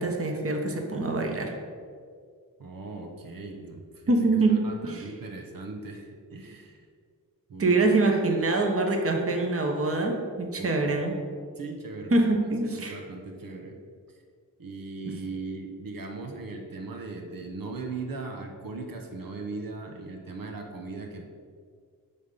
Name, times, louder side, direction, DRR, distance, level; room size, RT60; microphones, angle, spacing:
voice 1, 0.0-1.5 4.1-5.0 7.6-11.1 12.1-13.0, right 2 dB, 40° right, 2 dB, 1.2 m, -25 dB
voice 2, 2.6-4.2 4.5-6.9 7.5-7.7 10.6-10.8 11.6-12.5 12.8-13.8 14.1-14.2 14.6-21.3, right 3 dB, 85° right, 3 dB, 1.1 m, -38 dB
11.0 x 3.7 x 6.8 m, 2.1 s
wide cardioid pair, 140°, 34 cm